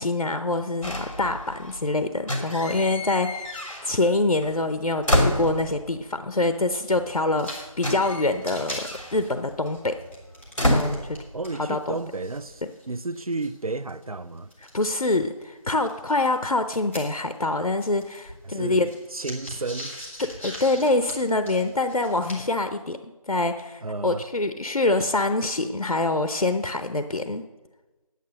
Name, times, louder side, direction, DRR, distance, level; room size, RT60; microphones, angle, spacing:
voice 1, 0.0-10.0 10.7-11.2 11.6-11.9 14.7-18.9 20.4-27.4, left 2 dB, 80° left, 0.8 m, -25 dB
sound 1, 0.8-1.8 2.2-4.2 4.4-6.0 7.0-7.1 7.3-11.8 12.1-12.5, left 1 dB, 60° left, 2.1 m, -28 dB
sound 2, 7.3-7.7 7.9-8.0 8.3-11.2 11.4-15.2 15.8-17.5 17.8-22.6, equal, 20° left, 1.7 m, -41 dB
voice 2, 11.3-14.5 18.4-20.0 23.8-24.2, right 3 dB, 70° right, 0.6 m, -32 dB
9.3 x 8.3 x 6.4 m
figure-of-eight pair, 175°, 19 cm